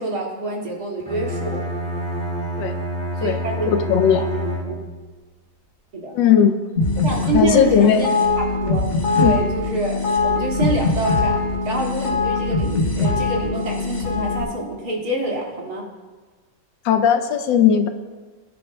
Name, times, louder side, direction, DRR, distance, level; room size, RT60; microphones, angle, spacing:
voice 1, 0.0-1.6 3.2-3.8 4.1-4.7 5.9-6.1 7.0-8.1 8.4-8.9 9.2-11.4 11.6-15.8, right 2 dB, 55° right, -3 dB, 2.7 m, -26 dB
Bowed string instrument, 1.0-5.1, equal, 5° left, 1.5 m, -28 dB
voice 2, 3.7-4.3 6.1-6.6 7.3-8.1 9.2-9.4 16.8-17.9, left 8 dB, 80° left, 8 dB, 1.4 m, -17 dB
sound 1, 6.8-14.4, left 3 dB, 50° left, 3.6 m, -22 dB
20.5 x 10.5 x 2.2 m, 1.3 s
omnidirectional pair, 2.1 m